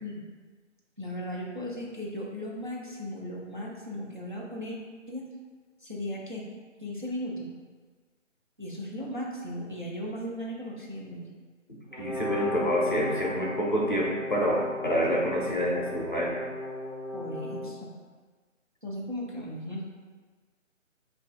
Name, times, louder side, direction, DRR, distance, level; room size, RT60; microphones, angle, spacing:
voice 1, 1.0-4.8 5.1-5.2 5.8-6.5 6.8-7.5 8.6-11.3 17.1-17.9 18.8-19.9, equal, 40° right, -4 dB, 0.4 m, -36 dB
voice 2, 11.7-16.4, equal, 40° left, -3 dB, 0.5 m, -28 dB
Brass instrument, 11.9-17.7, left 1 dB, 60° right, 1.2 m, -35 dB
3.2 x 2.3 x 3.8 m, 1.5 s
hypercardioid pair, 175°, 38 cm